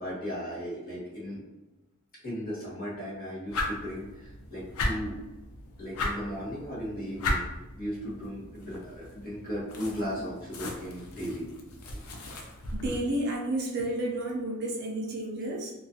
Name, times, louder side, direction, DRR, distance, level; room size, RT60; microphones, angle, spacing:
voice 1, 0.0-1.4 2.1-5.1 5.8-7.4 7.8-11.4, equal, 45° left, -6 dB, 1.0 m, -36 dB
sound 1, 3.5-13.0, left 2 dB, 90° left, 0.5 m, -36 dB
voice 2, 12.7-15.7, right 1 dB, 50° right, -2 dB, 0.5 m, -31 dB
2.4 x 2.3 x 2.6 m, 1.1 s
head